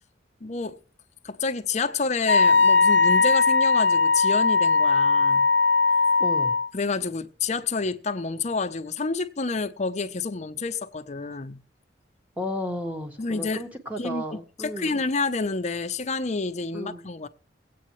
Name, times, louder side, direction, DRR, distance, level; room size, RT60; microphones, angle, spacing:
voice 1, 0.4-0.8 1.2-5.5 6.7-11.6 13.2-13.6 14.0-17.3, left 4 dB, 40° left, 0.6 m, -29 dB
Wind instrument woodwind instrument, 2.3-6.7, left 4 dB, 70° left, 0.8 m, -19 dB
voice 2, 6.2-6.5 12.4-15.0 16.7-17.0, left 1 dB, 10° right, 1.4 m, -33 dB
22.0 x 8.5 x 3.1 m
head